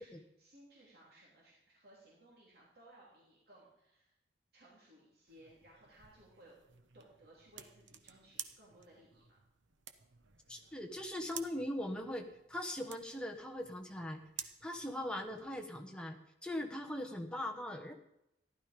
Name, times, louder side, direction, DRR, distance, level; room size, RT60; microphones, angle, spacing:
voice 1, 0.0-4.1 4.5-6.6 6.9-9.4, right 1 dB, 55° right, -4 dB, 3.2 m, -61 dB
sound 1, 5.3-15.6, right 9 dB, 85° right, 1.0 m, -53 dB
voice 2, 10.5-17.9, left 1 dB, 5° left, 3 dB, 1.2 m, -41 dB
15.0 x 12.0 x 5.2 m, 0.83 s
head